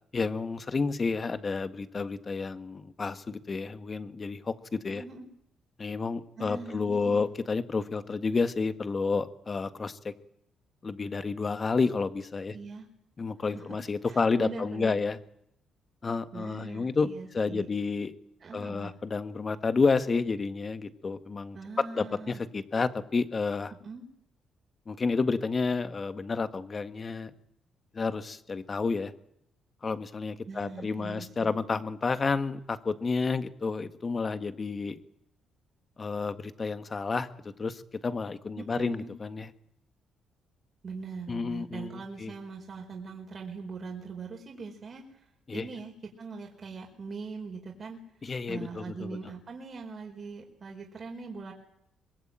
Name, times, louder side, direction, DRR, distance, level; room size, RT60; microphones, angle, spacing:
voice 1, 0.1-5.0 5.8-10.1 10.8-12.5 13.2-15.2 16.0-17.1 17.3-18.1 18.5-23.7 24.9-27.3 27.9-29.1 29.8-35.0 36.0-39.5 41.3-42.3 45.5-45.6 48.2-49.2, left 4 dB, 35° left, 10 dB, 1.7 m, -30 dB
voice 2, 4.9-5.3 6.4-7.3 12.5-12.9 13.5-13.8 14.1-15.0 16.3-17.7 18.4-18.9 21.5-22.4 23.8-24.0 30.5-31.6 38.6-39.1 40.8-51.5, right 4 dB, 45° right, 1 dB, 4.9 m, -41 dB
24.0 x 21.5 x 9.0 m, 0.76 s
cardioid pair, 90°, 0 cm